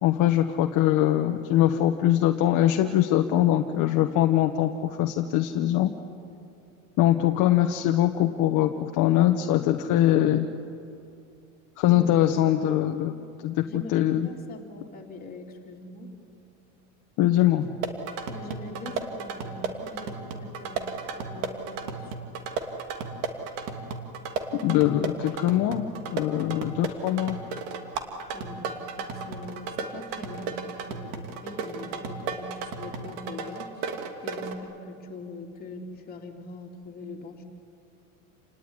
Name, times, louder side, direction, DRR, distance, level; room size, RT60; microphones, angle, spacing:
voice 1, 0.0-5.9 7.0-10.5 11.8-14.3 17.2-17.7 24.5-27.4, left 12 dB, 45° left, 5 dB, 1.3 m, -22 dB
voice 2, 13.6-16.1 18.3-22.3 28.3-28.7 29.0-37.4, left 2 dB, 20° left, 0 dB, 3.6 m, -42 dB
sound 1, 17.6-34.5, right 5 dB, 60° right, 2.8 m, -34 dB
29.0 x 19.0 x 9.9 m, 2.5 s
supercardioid pair, 135°, 42 cm